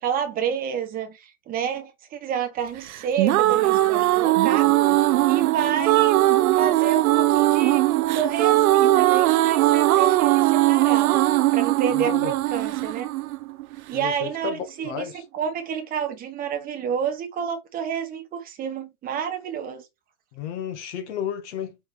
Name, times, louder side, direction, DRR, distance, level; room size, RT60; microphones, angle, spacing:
voice 1, 0.0-4.7 5.2-6.2 6.5-7.9 8.1-11.2 11.5-13.1 13.9-15.1 15.3-19.8, right 8 dB, 20° right, 1.3 m, -29 dB
sound 1, 2.9-14.0, right 16 dB, 80° right, 0.7 m, -20 dB
voice 2, 11.9-12.3 13.9-15.2 20.3-21.8, left 8 dB, 55° left, 2.0 m, -32 dB
5.2 x 4.6 x 4.0 m
supercardioid pair, 160°, 42 cm